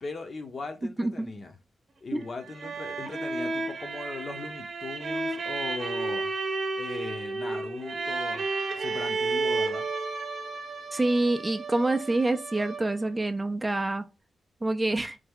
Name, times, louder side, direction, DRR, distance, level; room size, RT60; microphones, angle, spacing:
voice 1, 0.0-1.6 2.0-6.3 6.8-9.9, left 3 dB, 45° left, 0.7 m, -39 dB
voice 2, 0.8-1.3 2.1-2.2 10.9-14.0 14.6-15.2, right 2 dB, 20° right, 0.4 m, -27 dB
sound 1, 2.2-13.1, right 3 dB, 55° right, 0.7 m, -32 dB
3.3 x 2.2 x 3.5 m
cardioid pair, 95°, 0 cm